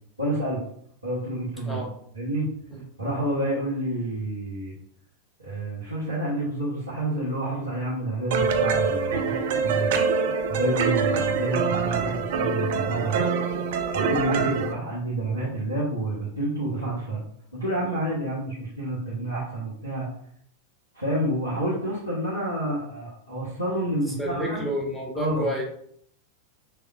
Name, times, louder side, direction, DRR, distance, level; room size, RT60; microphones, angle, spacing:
voice 1, 0.2-0.6 1.0-1.8 2.1-2.5 3.0-4.7 5.4-9.4 9.6-9.9 10.5-13.2 13.9-17.2 17.5-20.1 20.9-24.6 25.1-25.5, right 1 dB, 85° right, -9 dB, 1.3 m, -29 dB
sound 1, 8.3-14.7, right 5 dB, 55° right, 0.5 m, -25 dB
voice 2, 24.2-25.6, equal, 10° left, -1 dB, 1.3 m, -29 dB
5.7 x 3.4 x 2.4 m, 0.65 s
figure-of-eight pair, 90°, 0 cm